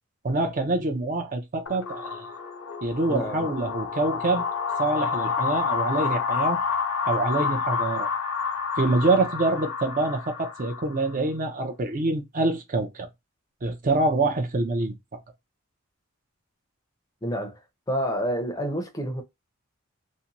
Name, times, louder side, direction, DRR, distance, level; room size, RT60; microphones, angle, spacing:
voice 1, 0.2-2.3 2.8-4.4 4.8-6.6 7.1-8.1 8.8-13.1 13.6-14.9, right 2 dB, 40° right, 0.5 m, -25 dB
sound 1, 1.7-11.1, left 6 dB, 85° left, 0.9 m, -29 dB
voice 2, 3.1-3.6 17.2-17.6 17.9-19.2, equal, 15° left, 0.5 m, -29 dB
2.6 x 2.2 x 2.8 m
head